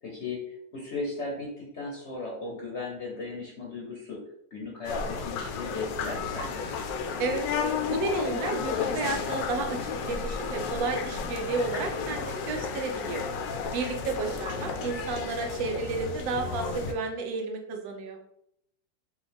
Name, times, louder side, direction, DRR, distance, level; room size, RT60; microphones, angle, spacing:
voice 1, 0.0-4.2 4.5-6.7 14.1-14.4, left 3 dB, 55° left, -2 dB, 0.8 m, -37 dB
sound 1, 4.8-16.9, left 5 dB, 80° left, 1.2 m, -32 dB
voice 2, 7.9-13.2 13.7-18.2, right 3 dB, 85° right, 3 dB, 1.4 m, -32 dB
5.0 x 2.3 x 3.4 m, 0.74 s
omnidirectional pair, 2.0 m